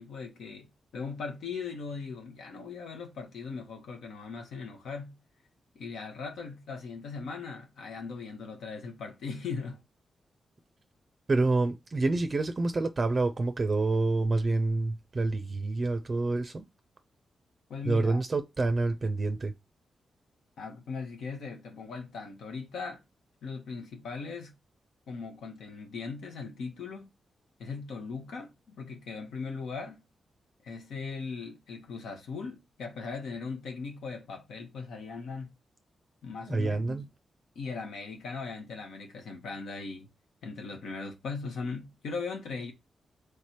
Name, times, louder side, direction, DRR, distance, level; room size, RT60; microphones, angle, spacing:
voice 1, 0.0-5.2 5.7-9.8 17.7-18.2 20.6-23.0 23.4-24.5 25.1-27.1 27.6-30.0 30.6-35.5 36.2-37.1 37.5-40.1 40.4-42.7, left 4 dB, 90° left, 1.1 m, -39 dB
voice 2, 11.3-16.6 17.9-19.5 36.4-37.1, right 3 dB, 35° right, 0.4 m, -27 dB
3.3 x 3.3 x 4.2 m
cardioid pair, 95°, 0 cm